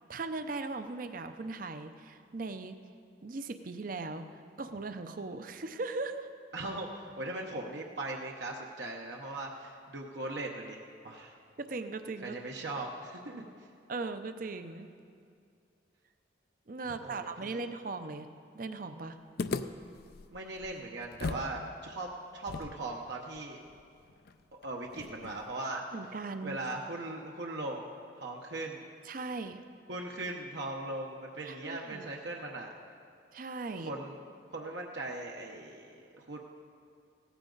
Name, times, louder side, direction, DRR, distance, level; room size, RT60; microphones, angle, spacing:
voice 1, 0.1-2.8 3.2-6.3 11.6-12.4 13.9-14.9 16.7-18.3 18.5-19.2 25.9-26.6 29.1-29.6 31.5-32.1 33.3-33.9, right 3 dB, 50° right, 9 dB, 0.6 m, -38 dB
voice 2, 6.5-10.8 11.0-11.4 12.2-13.7 17.0-17.6 20.3-23.6 24.5-25.8 26.4-27.9 28.2-28.8 29.9-32.7 33.8-34.2 34.5-36.4, right 2 dB, 70° right, 0 dB, 1.0 m, -39 dB
sound 1, 19.4-21.5 21.8-21.9 22.5-25.6, left 4 dB, 55° left, 0.4 m, -40 dB
16.5 x 14.0 x 3.9 m, 2.4 s
head